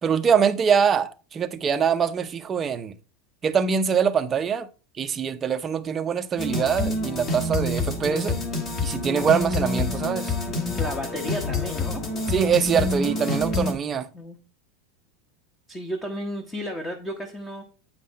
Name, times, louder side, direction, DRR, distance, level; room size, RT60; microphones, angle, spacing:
voice 1, 0.0-3.0 3.4-4.7 5.0-8.4 8.8-10.4 12.3-14.1, right 7 dB, 20° right, 0.7 m, -23 dB
sound 1, 6.4-13.7, left 2 dB, 30° left, 1.7 m, -27 dB
voice 2, 10.7-12.1 14.1-14.4 15.7-17.6, equal, 10° left, 1.1 m, -33 dB
8.7 x 5.6 x 4.1 m
supercardioid pair, 155°, 0 cm